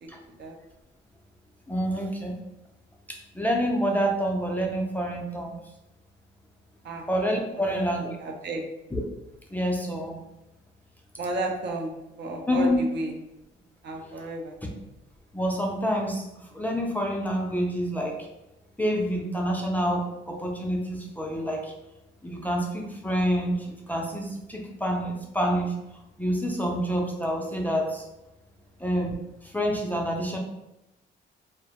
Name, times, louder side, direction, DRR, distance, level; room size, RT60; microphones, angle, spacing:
voice 1, 1.7-2.4 3.1-5.6 7.1-8.1 8.9-9.0 9.5-10.2 12.5-12.8 15.3-16.2 16.5-18.2 18.8-21.7 22.2-25.7 26.2-28.0 28.8-29.2 29.5-30.4, equal, 10° left, -1 dB, 0.3 m, -27 dB
voice 2, 7.5-8.6 11.2-11.9 12.2-13.1 13.8-14.5, right 2 dB, 60° right, 1 dB, 0.5 m, -33 dB
2.2 x 2.0 x 2.7 m, 0.90 s
cardioid pair, 90°, 20 cm